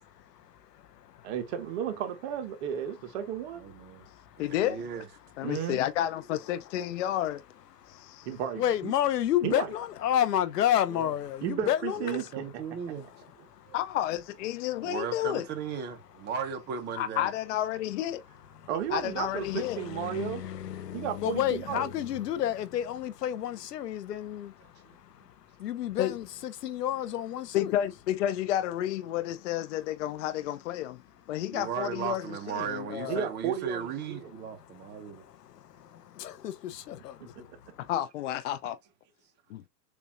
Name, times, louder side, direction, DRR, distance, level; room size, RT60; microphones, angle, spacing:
voice 1, 0.3-1.3 3.9-4.4 7.8-8.3 8.6-12.3 13.0-13.7 18.6-18.7 19.4-27.8 34.5-37.8, left 11 dB, 80° left, 1.2 m, -32 dB
voice 2, 1.2-3.6 5.4-5.8 8.2-8.9 9.4-9.7 11.4-12.6 13.7-13.8 18.7-20.4 20.9-21.9 33.1-34.3 37.4-37.5, right 9 dB, 40° right, 1.5 m, -33 dB
voice 3, 3.6-4.0 4.4-5.1 10.9-11.1 12.0-13.1 14.8-17.3 31.5-35.2, right 7 dB, 20° right, 1.1 m, -36 dB
voice 4, 4.4-4.8 5.4-7.4 7.9-8.3 13.7-15.5 17.0-18.2 18.9-19.8 26.0-26.1 27.5-31.0 31.3-33.2 37.8-38.8 39.5-39.6, left 12 dB, 50° left, 0.5 m, -31 dB
7.0 x 2.8 x 2.5 m
hypercardioid pair, 145°, 48 cm